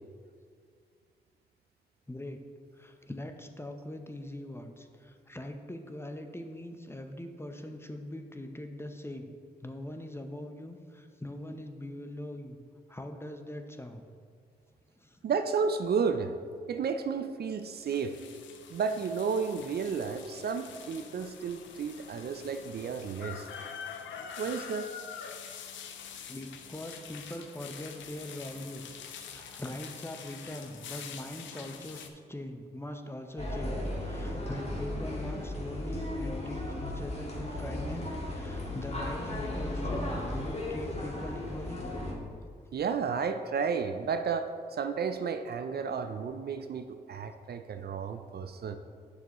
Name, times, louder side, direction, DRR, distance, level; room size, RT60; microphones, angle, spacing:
voice 1, 2.1-2.4 2.7-9.3 9.6-12.6 12.9-14.0 15.0-15.2 26.3-41.8, left 1 dB, 10° left, 5 dB, 0.8 m, -42 dB
voice 2, 15.2-16.3 16.7-18.2 18.7-23.5 24.4-24.9 42.7-44.5 44.8-48.8, right 6 dB, 55° right, 9 dB, 0.5 m, -32 dB
sound 1, 17.6-32.1, left 7 dB, 80° left, 0.6 m, -45 dB
sound 2, 33.4-42.1, left 1 dB, 35° left, 2.0 m, -35 dB
8.5 x 6.6 x 3.1 m, 2.1 s
supercardioid pair, 45°, 19 cm